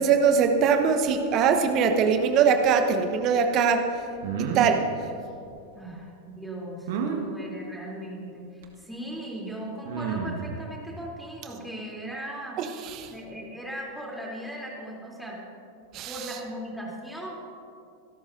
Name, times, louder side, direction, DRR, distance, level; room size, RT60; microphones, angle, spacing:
voice 1, 0.0-3.9 4.5-4.8 12.6-13.1 15.9-16.1, right 6 dB, 35° right, 6 dB, 1.2 m, -22 dB
sound 1, 4.2-4.7 6.9-7.2 8.6-8.7 9.9-10.5, right 7 dB, 55° right, 1.5 m, -29 dB
voice 2, 5.7-12.8 13.1-15.4 16.0-17.4, right 1 dB, ahead, -4 dB, 3.4 m, -38 dB
26.0 x 12.5 x 2.7 m, 2.6 s
figure-of-eight pair, 90°, 0 cm